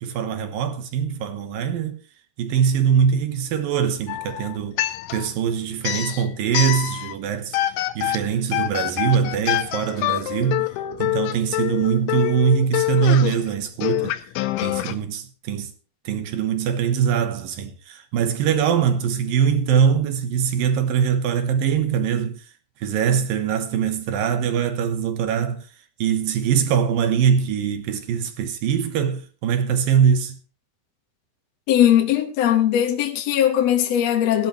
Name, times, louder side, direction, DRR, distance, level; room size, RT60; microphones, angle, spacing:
voice 1, 0.0-2.0 2.4-4.8 5.1-7.6 8.0-10.7 11.0-14.2 14.6-15.7 16.1-22.4 22.8-25.6 26.0-30.4, right 7 dB, 70° right, 2.4 m, -22 dB
sound 1, 4.1-5.4 5.8-7.2 7.5-14.9, left 15 dB, 85° left, 3.1 m, -26 dB
voice 2, 31.7-34.5, left 10 dB, 65° left, 1.7 m, -19 dB
18.0 x 11.5 x 3.1 m
omnidirectional pair, 5.3 m